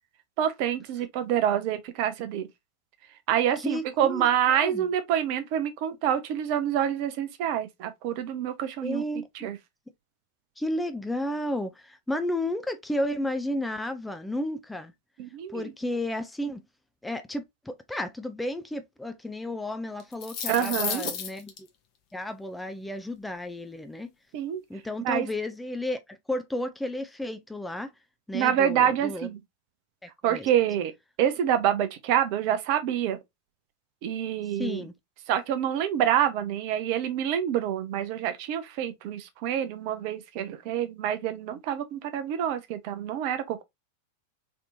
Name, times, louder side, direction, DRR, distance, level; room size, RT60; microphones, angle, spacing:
voice 1, 0.4-2.5 3.3-9.0 9.3-9.6 15.2-15.7 20.5-21.1 24.3-24.6 25.0-25.3 28.3-29.4 30.2-30.9 31.2-33.2 34.0-34.9 35.3-43.6, right 10 dB, 45° right, 0.6 m, -27 dB
voice 2, 3.6-4.9 8.8-9.5 10.6-14.9 15.5-16.6 17.0-21.7 22.1-24.1 24.7-27.9 28.3-29.3 30.0-30.5 34.6-34.9, left 1 dB, 5° left, 0.4 m, -32 dB
sound 1, 20.0-21.6, left 8 dB, 40° left, 0.7 m, -32 dB
3.3 x 2.8 x 2.5 m
figure-of-eight pair, 90°, 0 cm